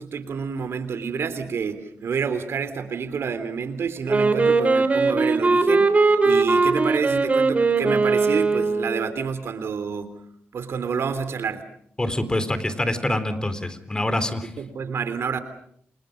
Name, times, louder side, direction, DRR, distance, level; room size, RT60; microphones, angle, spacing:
voice 1, 0.0-10.2 10.5-11.7 14.6-15.4, right 6 dB, 70° right, 12 dB, 3.3 m, -29 dB
Wind instrument woodwind instrument, 4.1-9.1, right 3 dB, 35° right, 3.7 m, -20 dB
voice 2, 12.0-14.5, left 1 dB, 20° left, 12 dB, 3.9 m, -25 dB
30.0 x 27.5 x 5.2 m, 0.67 s
cardioid pair, 80°, 4 cm